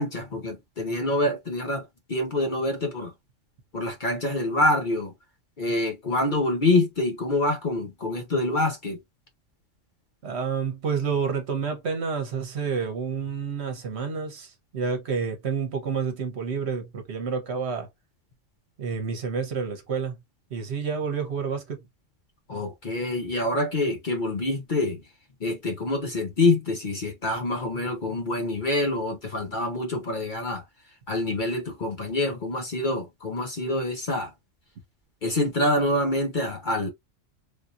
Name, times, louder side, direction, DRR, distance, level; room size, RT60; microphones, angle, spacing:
voice 1, 0.0-3.1 3.7-5.1 5.6-9.0 22.5-25.0 25.4-30.6 31.1-34.3 35.2-36.9, left 2 dB, 45° left, 0.8 m, -26 dB
voice 2, 10.2-17.9 18.8-20.2 20.5-21.8, right 6 dB, 60° right, 1.1 m, -29 dB
3.4 x 2.7 x 2.4 m
omnidirectional pair, 1.3 m